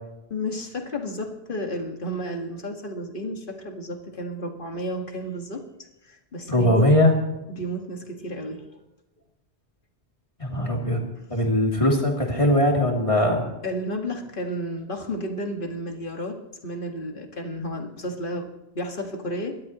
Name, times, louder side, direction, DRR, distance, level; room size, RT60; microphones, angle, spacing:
voice 1, 0.3-5.6 6.0-6.9 7.5-8.8 13.6-19.6, equal, 50° left, 3 dB, 2.0 m, -32 dB
voice 2, 6.5-7.1 10.4-11.0 11.3-13.5, left 1 dB, 30° left, -1 dB, 2.9 m, -20 dB
29.0 x 13.0 x 3.0 m, 0.96 s
omnidirectional pair, 1.1 m